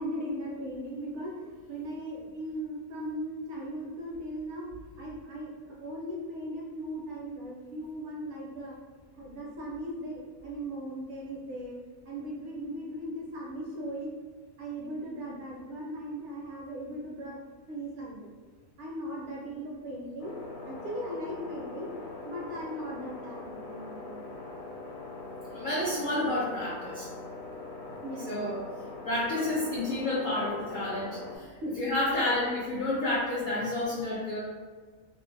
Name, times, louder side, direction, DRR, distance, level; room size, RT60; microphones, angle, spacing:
voice 1, 0.0-4.7 5.0-8.8 9.1-11.8 12.1-14.1 14.6-17.4 17.7-18.3 18.8-20.4 20.7-21.9 22.2-24.4 27.9-28.5 29.5-29.6 31.6-32.2, equal, 65° right, -3 dB, 0.8 m, -38 dB
sound 1, 20.2-31.4, left 3 dB, 60° left, 0.9 m, -42 dB
voice 2, 25.5-27.1 28.3-28.5 29.0-34.4, left 1 dB, 80° left, -7 dB, 0.4 m, -30 dB
2.5 x 2.0 x 2.6 m, 1.5 s
omnidirectional pair, 1.5 m